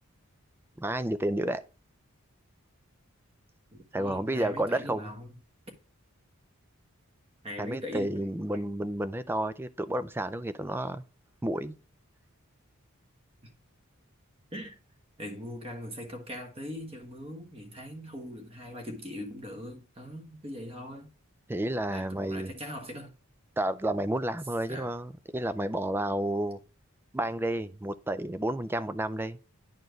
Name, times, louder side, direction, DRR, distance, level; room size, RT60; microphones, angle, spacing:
voice 1, 0.8-1.6 3.9-5.1 7.6-11.0 11.4-11.8 21.5-22.5 23.6-26.6 27.1-29.4, right 1 dB, 10° right, 0.3 m, -31 dB
voice 2, 3.7-5.3 7.4-8.7 13.4-13.5 14.5-14.8 15.2-21.1 21.9-23.1 24.7-24.9, equal, 25° right, 1.4 m, -41 dB
10.5 x 4.4 x 3.1 m
head